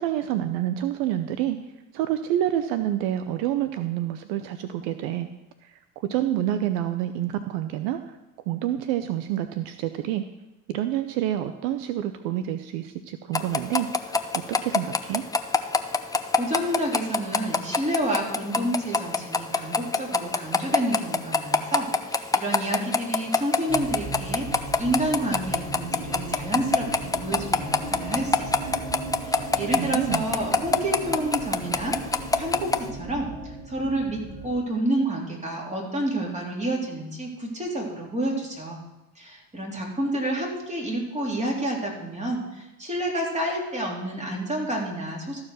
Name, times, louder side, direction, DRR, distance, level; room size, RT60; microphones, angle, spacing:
voice 1, 0.0-1.6 1.9-5.3 6.0-8.0 8.5-10.2 10.7-14.1 14.5-15.2 29.7-30.2, right 12 dB, 70° right, 10 dB, 0.7 m, -28 dB
sound 1, 13.3-32.8, left 3 dB, 10° left, 0.6 m, -23 dB
voice 2, 16.4-28.9 29.2-38.8 39.1-45.4, right 1 dB, 15° right, -2 dB, 3.4 m, -29 dB
sound 2, 23.7-34.5, right 2 dB, 45° right, 4.1 m, -37 dB
14.0 x 4.8 x 6.3 m, 0.98 s
hypercardioid pair, 80°, 40 cm